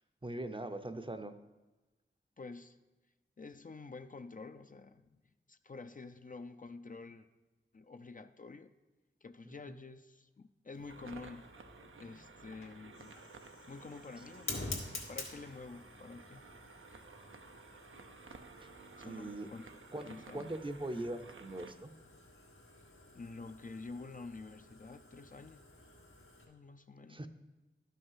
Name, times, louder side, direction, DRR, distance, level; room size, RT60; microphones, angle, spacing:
voice 1, 0.2-1.4 9.5-9.8 19.0-19.5 19.9-21.9 27.1-27.3, right 1 dB, 25° right, 8 dB, 0.6 m, -41 dB
voice 2, 2.4-2.8 3.4-5.2 5.5-7.3 7.7-8.7 9.2-11.5 12.0-13.2 13.7-16.4 19.0-19.6 20.0-20.5 23.1-25.6 26.5-27.2, left 3 dB, 40° left, 9 dB, 0.5 m, -49 dB
Fire, 10.7-26.4, left 2 dB, 80° left, 1.6 m, -50 dB
sound 1, 10.9-21.7, right 4 dB, 85° right, 0.7 m, -55 dB
11.5 x 5.6 x 5.6 m, 1.1 s
wide cardioid pair, 55°, 20 cm